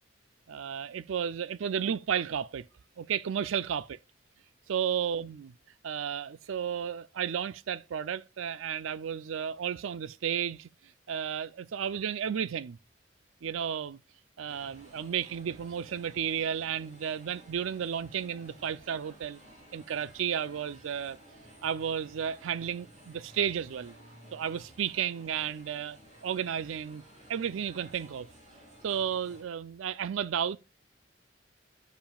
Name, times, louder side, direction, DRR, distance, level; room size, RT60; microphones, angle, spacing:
voice 1, 0.5-2.7 3.0-4.0 4.7-5.5 5.8-10.7 11.1-12.8 13.4-14.0 14.4-19.4 19.7-21.2 21.6-23.9 24.3-26.0 26.2-27.0 27.3-28.3 28.8-30.6, right 8 dB, 90° right, 0.4 m, -33 dB
sound 1, 14.5-29.4, equal, 35° right, 3.1 m, -55 dB
10.5 x 7.2 x 2.3 m
head